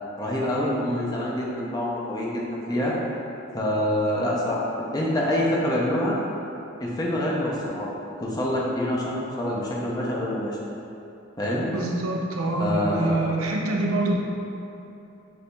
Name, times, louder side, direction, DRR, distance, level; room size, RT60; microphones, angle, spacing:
voice 1, 0.2-3.0 3.5-4.7 4.9-6.2 6.8-7.9 8.2-10.6 11.4-11.7 12.5-13.3, left 1 dB, 20° left, -4 dB, 0.5 m, -26 dB
voice 2, 11.7-14.1, right 2 dB, 80° right, 0 dB, 0.5 m, -25 dB
6.6 x 2.7 x 2.2 m, 2.9 s
head